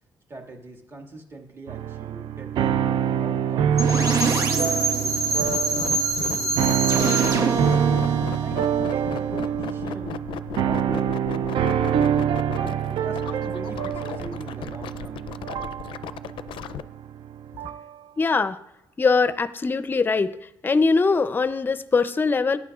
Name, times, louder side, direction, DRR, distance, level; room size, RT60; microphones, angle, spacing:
voice 1, 0.3-2.8 3.2-4.3 4.5-7.9 8.4-10.3 10.6-12.1 12.5-15.7, right 2 dB, 30° right, 1 dB, 1.9 m, -41 dB
sound 1, 1.7-17.9, right 9 dB, 80° right, 0.4 m, -26 dB
sound 2, 3.8-9.6, right 3 dB, 45° right, 1.3 m, -25 dB
sound 3, 5.2-16.8, left 9 dB, 90° left, 0.4 m, -35 dB
voice 2, 18.2-18.6 19.0-20.3 20.6-22.6, left 4 dB, 25° left, 13 dB, 0.5 m, -21 dB
17.5 x 9.9 x 2.4 m, 0.87 s
cardioid pair, 140°, 8 cm